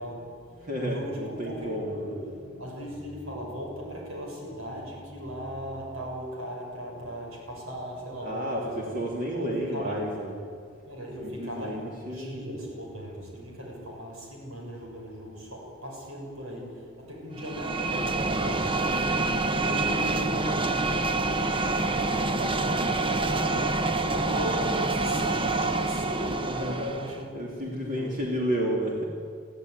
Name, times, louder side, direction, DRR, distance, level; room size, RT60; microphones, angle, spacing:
voice 1, 0.0-8.9 9.3-10.2 10.8-26.5 26.9-27.3 27.6-28.2, equal, 85° right, -1 dB, 6.9 m, -38 dB
voice 2, 0.6-2.1 8.2-10.4 11.2-12.4 26.4-26.9 27.3-29.0, equal, 40° right, -2 dB, 3.2 m, -31 dB
sound 1, 17.4-27.2, right 3 dB, 25° right, 0.8 m, -27 dB
22.5 x 14.5 x 9.8 m, 2.3 s
head